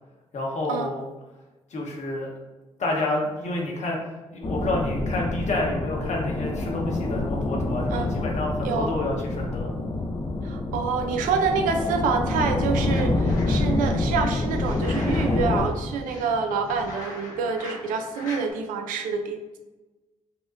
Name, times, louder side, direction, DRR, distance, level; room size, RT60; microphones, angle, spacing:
voice 1, 0.3-1.0 1.7-2.3 2.8-4.0 4.3-9.7, left 2 dB, 60° left, -2 dB, 1.0 m, -29 dB
sound 1, 4.4-15.7, left 2 dB, 35° left, 0.5 m, -27 dB
voice 2, 8.6-8.9 10.4-19.6, right 5 dB, 80° right, 5 dB, 0.4 m, -27 dB
sound 2, 12.6-13.9 14.3-18.5, left 1 dB, 75° left, 0.9 m, -41 dB
4.1 x 2.2 x 2.5 m, 1.1 s
hypercardioid pair, 45°, 14 cm